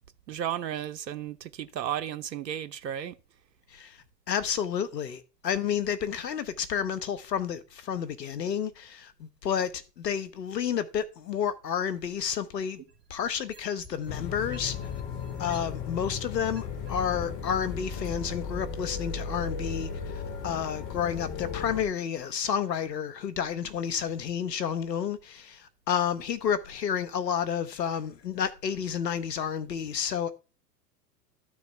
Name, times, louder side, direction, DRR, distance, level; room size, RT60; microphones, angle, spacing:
voice 1, 0.3-3.1, right 10 dB, 85° right, 0.9 m, -34 dB
voice 2, 4.3-12.8 13.1-14.8 15.4-30.3, left 8 dB, 80° left, 1.4 m, -30 dB
sound 1, 12.5-14.1 14.5-16.9 17.5-17.6, right 4 dB, 20° right, 2.1 m, -51 dB
sound 2, 14.1-21.8, left 5 dB, 40° left, 3.0 m, -36 dB
13.0 x 6.1 x 4.6 m
hypercardioid pair, 105°, 49 cm